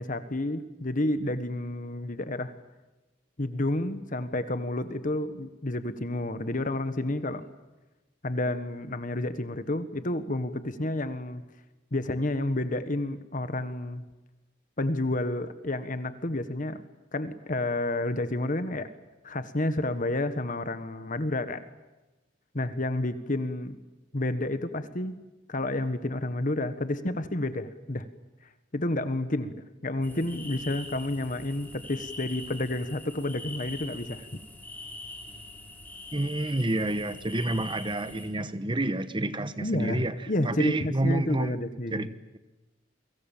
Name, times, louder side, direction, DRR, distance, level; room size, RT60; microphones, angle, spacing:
voice 1, 0.0-2.5 3.4-7.4 8.2-11.4 11.9-14.0 14.8-16.8 17.1-18.9 19.2-21.6 22.5-23.8 24.1-25.1 25.5-28.1 28.7-34.3 39.6-42.1, left 1 dB, 45° left, 11 dB, 1.4 m, -30 dB
sound 1, 30.0-38.3, left 2 dB, 10° left, 5.8 m, -43 dB
voice 2, 36.1-41.6 41.9-42.1, right 1 dB, 25° right, 12 dB, 1.2 m, -29 dB
29.5 x 24.5 x 7.4 m, 1.1 s
head